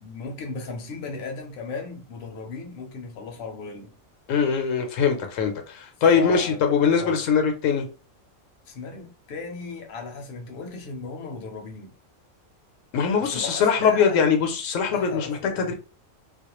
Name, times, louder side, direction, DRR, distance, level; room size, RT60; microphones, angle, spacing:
voice 1, 0.0-4.0 6.1-6.7 7.0-7.2 8.7-11.9 13.2-14.2 14.9-15.7, left 4 dB, 55° left, 0.7 m, -36 dB
voice 2, 4.3-7.9 12.9-15.7, left 6 dB, 80° left, 1.0 m, -22 dB
2.3 x 2.1 x 2.9 m
omnidirectional pair, 1.3 m